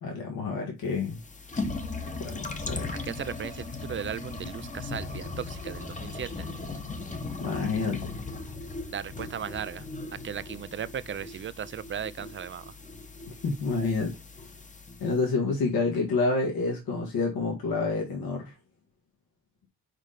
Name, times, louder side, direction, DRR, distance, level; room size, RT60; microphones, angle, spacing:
voice 1, 0.0-1.2 2.2-3.0 7.4-8.2 13.4-14.2 15.0-18.5, left 3 dB, 85° left, 1.9 m, -28 dB
sound 1, 0.9-15.2, left 3 dB, 20° left, 0.9 m, -38 dB
voice 2, 3.0-6.5 8.9-9.9 10.2-12.6, right 8 dB, 35° right, 0.4 m, -36 dB
5.1 x 5.0 x 4.0 m
wide cardioid pair, 135°, 35 cm